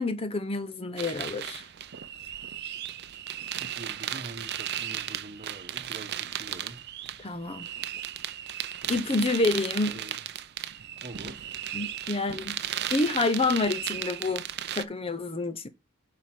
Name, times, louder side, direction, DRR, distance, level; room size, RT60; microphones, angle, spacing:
voice 1, 0.0-1.7 7.2-7.7 8.9-10.0 11.7-12.6 12.9-14.5 14.7-15.7, left 3 dB, 25° left, 0.6 m, -28 dB
sound 1, 1.0-14.8, right 11 dB, 50° right, 0.5 m, -35 dB
voice 2, 3.6-6.8 9.9-10.5 11.0-11.5, right 2 dB, 35° right, 1.0 m, -45 dB
7.4 x 4.3 x 5.9 m
head